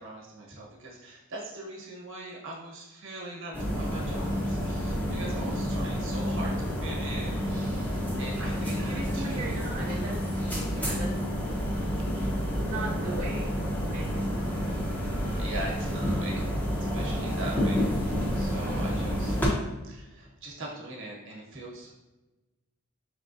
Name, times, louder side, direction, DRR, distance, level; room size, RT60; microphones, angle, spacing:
voice 1, 0.0-9.5 15.4-16.5 16.8-19.4 19.8-22.0, right 2 dB, 60° right, -2 dB, 1.2 m, -41 dB
sound 1, 3.5-19.5, equal, 10° left, 0.7 m, -29 dB
voice 2, 8.9-10.3 10.7-11.1 12.6-13.5 13.9-14.5, right 3 dB, 40° right, -5 dB, 0.5 m, -38 dB
5.3 x 3.4 x 2.6 m, 1.1 s
head